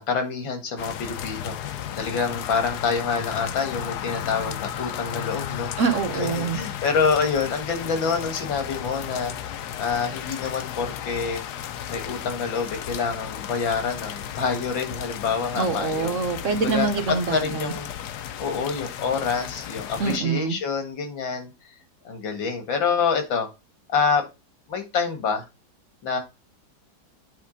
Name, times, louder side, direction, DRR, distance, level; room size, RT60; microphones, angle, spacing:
voice 1, 0.0-5.7 6.1-9.3 9.8-11.4 11.9-16.1 16.6-16.9 17.3-17.9 18.4-21.5 22.0-23.5 23.9-24.2 24.7-25.4 26.0-26.2, left 5 dB, 90° left, 6 dB, 2.5 m, -27 dB
sound 1, 0.8-20.2, left 10 dB, 65° left, 1.2 m, -34 dB
voice 2, 5.8-6.6 15.5-17.7 20.0-20.6, right 5 dB, 55° right, 7 dB, 1.0 m, -25 dB
9.1 x 3.7 x 5.1 m, 0.26 s
omnidirectional pair, 2.0 m